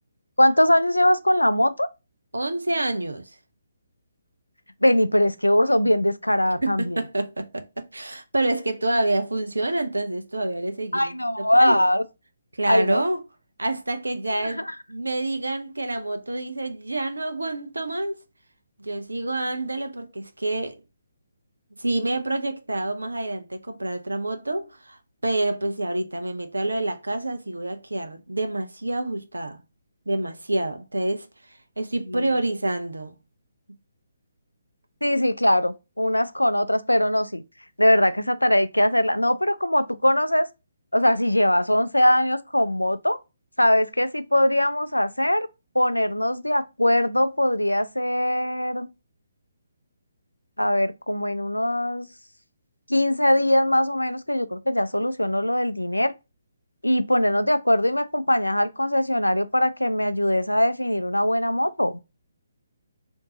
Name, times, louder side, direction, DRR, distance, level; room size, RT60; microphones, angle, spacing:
voice 1, 0.4-1.9 4.8-7.0 10.9-12.0 12.7-13.0 32.1-32.2 35.0-37.4 37.8-40.5 40.9-43.2 43.6-45.5 45.7-48.9 50.6-52.1 52.9-56.1 56.8-62.0, left 1 dB, 85° left, 0.4 m, -21 dB
voice 2, 2.3-3.3 6.6-11.8 12.5-13.2 13.6-18.2 18.8-20.8 21.8-29.6 30.1-33.2, right 2 dB, 75° right, 0.6 m, -28 dB
3.6 x 2.6 x 2.8 m
figure-of-eight pair, 140°, 0 cm